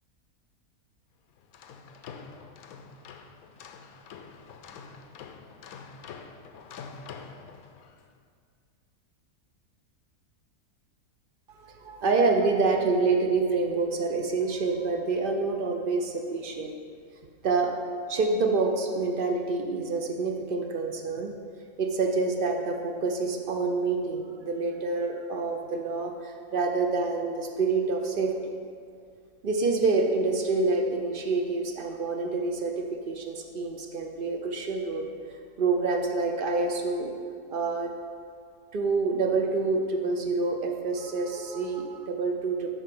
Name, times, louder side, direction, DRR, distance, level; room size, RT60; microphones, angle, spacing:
sound 1, 1.4-8.1, left 5 dB, 75° left, 1.0 m, -46 dB
voice 1, 11.6-16.7 17.4-17.8 18.1-21.3 21.8-28.3 29.4-32.7 33.1-35.1 35.6-37.1 37.5-37.9 38.7-42.7, right 3 dB, 55° right, 3 dB, 0.6 m, -27 dB
8.2 x 4.8 x 6.0 m, 2.1 s
omnidirectional pair, 1.6 m